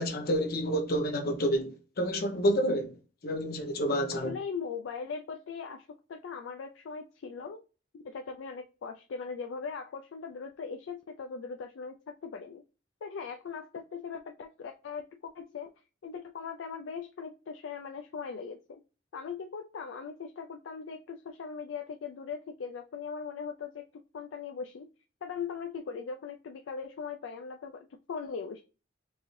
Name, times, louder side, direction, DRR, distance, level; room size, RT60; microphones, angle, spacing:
voice 1, 0.0-2.9 3.2-4.3, equal, 55° left, 0.8 m, -29 dB
voice 2, 4.3-7.6 7.9-12.6 13.0-15.7 16.0-18.6 19.1-23.9 24.1-24.9 25.2-28.6, left 5 dB, 75° left, 0.4 m, -40 dB
4.5 x 2.6 x 3.1 m
head